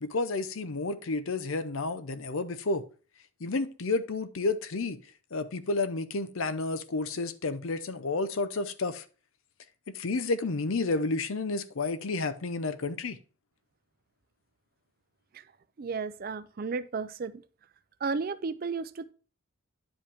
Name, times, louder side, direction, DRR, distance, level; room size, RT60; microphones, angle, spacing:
voice 1, 0.0-2.8 3.4-5.0 5.3-9.0 9.9-13.2, left 3 dB, 70° left, 0.7 m, -31 dB
voice 2, 15.8-17.4 18.0-19.1, right 4 dB, 45° right, 0.4 m, -33 dB
10.0 x 5.1 x 3.4 m
head